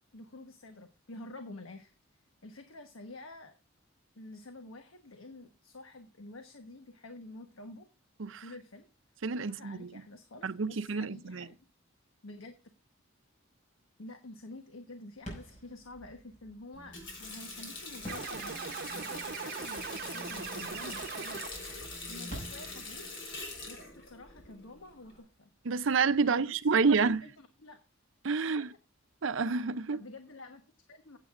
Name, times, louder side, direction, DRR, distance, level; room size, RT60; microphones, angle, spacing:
voice 1, 0.1-1.9 2.4-3.6 4.1-7.9 8.4-8.9 9.4-11.7 12.2-12.5 14.0-18.6 18.9-21.4 22.1-23.1 23.7-25.5 26.2-27.8 28.4-28.7 29.9-31.2, left 2 dB, 80° left, 1.2 m, -49 dB
voice 2, 9.2-9.9 10.4-11.5 25.6-27.3 28.2-28.7 29.2-30.0, right 4 dB, 65° right, 0.6 m, -28 dB
sound 1, 15.2-25.8, equal, 35° left, 5.5 m, -51 dB
Water tap faucet, 16.7-25.2, left 2 dB, 60° left, 4.4 m, -44 dB
sound 2, 18.1-21.9, right 5 dB, 50° right, 1.0 m, -40 dB
15.5 x 8.2 x 2.5 m
head